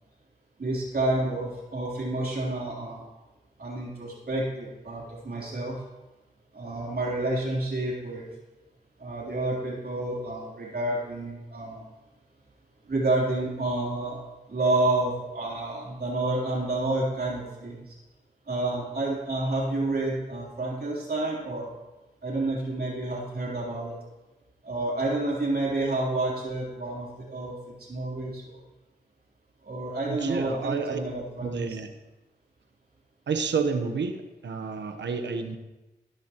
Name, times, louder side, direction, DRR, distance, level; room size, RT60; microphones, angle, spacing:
voice 1, 0.6-3.0 3.6-5.8 6.5-8.3 9.0-11.8 12.9-14.2 14.5-18.0 18.5-21.7 22.2-23.9 24.6-28.5 29.6-31.8, right 2 dB, 60° right, -4 dB, 3.4 m, -29 dB
voice 2, 30.1-31.0 31.4-31.9 33.3-34.2 34.4-35.6, right 5 dB, 85° right, 7 dB, 1.0 m, -29 dB
14.5 x 12.5 x 3.0 m, 1.1 s
cardioid pair, 40°, 18 cm